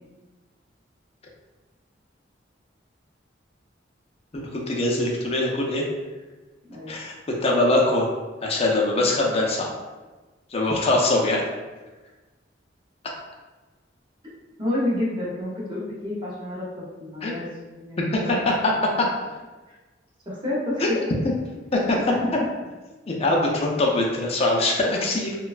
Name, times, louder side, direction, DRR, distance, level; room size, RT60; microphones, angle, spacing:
voice 1, 4.3-5.8 6.9-7.1 7.4-8.1 8.4-9.7 10.5-11.4 17.2-17.3 18.1-18.2 18.4-18.7 19.0-19.3 20.8-20.9 21.2-21.3 21.7-22.0 23.1-25.4, left 2 dB, 35° left, -1 dB, 0.5 m, -22 dB
voice 2, 6.7-7.0 14.6-17.5 17.8-18.4 20.3-21.0 22.1-22.3, left 1 dB, 25° right, -6 dB, 0.8 m, -29 dB
3.0 x 2.2 x 2.4 m, 1.2 s
head